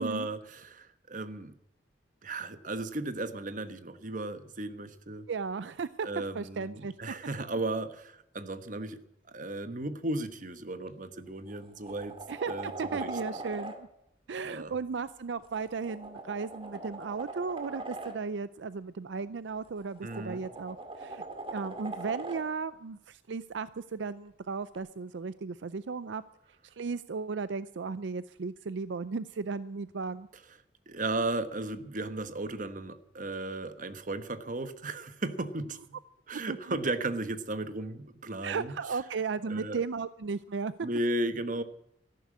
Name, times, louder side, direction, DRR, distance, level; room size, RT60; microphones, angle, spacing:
voice 1, 0.0-1.6 2.2-5.3 6.0-9.0 9.3-12.2 12.5-13.4 14.4-14.7 20.0-20.4 30.9-36.0 36.3-38.8 39.5-39.8 40.8-41.6, right 2 dB, 45° right, 11 dB, 1.2 m, -35 dB
voice 2, 5.3-6.1 6.3-6.9 12.3-13.9 14.3-21.2 21.5-26.2 26.8-30.3 36.5-36.6 38.4-40.7, right 5 dB, 75° right, 15 dB, 0.5 m, -35 dB
sound 1, 10.9-11.0 11.5-13.8 15.4-18.2 19.6-22.5 24.7-24.8, right 2 dB, 30° right, 2.0 m, -41 dB
14.0 x 11.5 x 8.3 m, 0.79 s
head